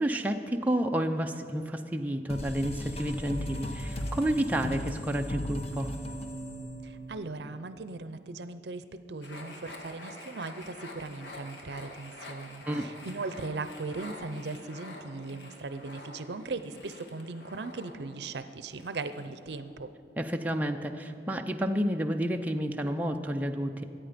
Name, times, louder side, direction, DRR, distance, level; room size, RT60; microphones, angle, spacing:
voice 1, 0.0-5.9 12.7-12.8 20.2-23.8, right 1 dB, 10° right, 3 dB, 0.5 m, -30 dB
sound 1, 2.3-7.6, equal, 35° left, 1.1 m, -37 dB
voice 2, 6.8-19.9, right 3 dB, 75° right, 12 dB, 0.6 m, -38 dB
sound 2, 9.2-19.6, left 1 dB, 85° left, 1.8 m, -47 dB
23.0 x 9.0 x 5.1 m, 2.5 s
head